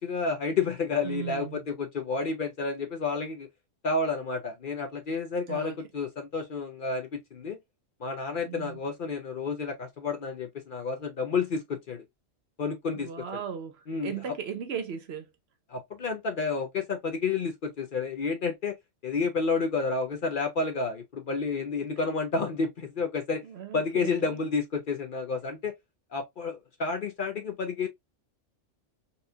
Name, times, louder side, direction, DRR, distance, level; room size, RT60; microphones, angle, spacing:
voice 1, 0.0-3.5 3.8-7.6 8.0-12.0 12.6-13.1 13.9-14.1 15.7-18.8 19.0-23.4 23.7-25.7 26.1-27.9, left 4 dB, 50° left, 0.7 m, -30 dB
voice 2, 1.0-1.6 5.5-5.8 8.4-8.8 12.9-15.3 23.4-24.4, right 8 dB, 65° right, 0.8 m, -37 dB
4.2 x 2.4 x 2.6 m
omnidirectional pair, 1.3 m